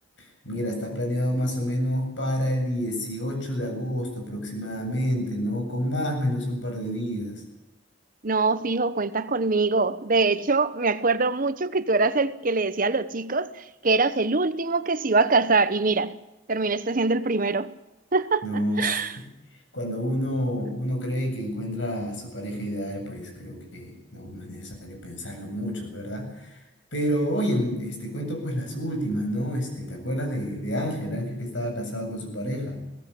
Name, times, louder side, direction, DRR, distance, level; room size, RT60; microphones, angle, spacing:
voice 1, 0.4-7.4 18.4-19.3 19.7-26.6 26.9-32.8, equal, 90° left, 7.8 m, -29 dB
voice 2, 8.2-16.2 16.5-17.7 18.1-18.4 18.8-19.1, right 3 dB, 50° right, 1.1 m, -23 dB
21.0 x 17.5 x 8.5 m
head